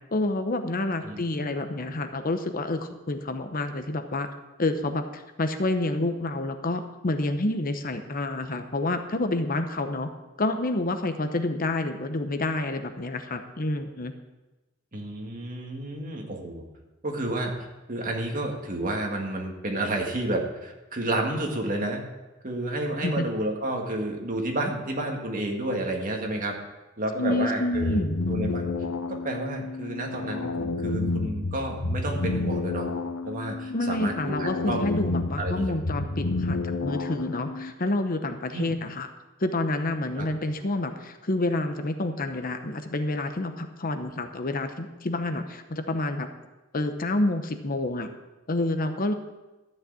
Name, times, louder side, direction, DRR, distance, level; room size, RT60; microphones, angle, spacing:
voice 1, 0.1-4.3 4.6-10.1 10.4-14.1 23.0-23.2 27.2-28.2 33.7-39.1 39.4-46.3 46.7-48.1 48.5-49.1, left 2 dB, 45° left, 8 dB, 0.9 m, -28 dB
voice 2, 14.9-16.6 17.0-22.0 22.4-26.6 27.0-28.0 28.3-28.7 29.1-32.9 33.3-34.9 35.4-35.8 38.5-38.7 40.2-40.3, right 1 dB, 40° right, 1 dB, 2.0 m, -30 dB
sound 1, 27.7-37.7, left 3 dB, 80° left, 0.9 m, -30 dB
13.0 x 6.6 x 8.4 m, 1.1 s
head